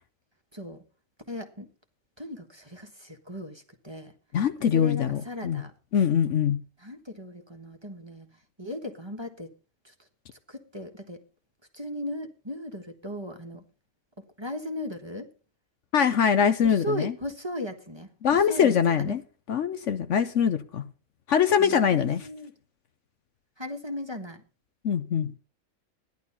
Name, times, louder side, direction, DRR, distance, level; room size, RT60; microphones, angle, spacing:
voice 1, 0.5-0.8 1.3-1.7 2.2-4.1 4.6-5.7 6.8-8.3 8.6-9.5 9.8-9.9 10.5-11.2 11.7-13.6 14.4-15.3 16.6-19.2 21.6-22.5 23.6-24.4, left 1 dB, 20° right, 1.3 m, -37 dB
voice 2, 4.3-5.6 5.9-6.6 15.9-17.1 18.2-19.2 19.5-20.9 21.3-22.3 24.8-25.4, left 7 dB, 65° left, 1.0 m, -23 dB
14.5 x 11.0 x 4.2 m
omnidirectional pair, 1.5 m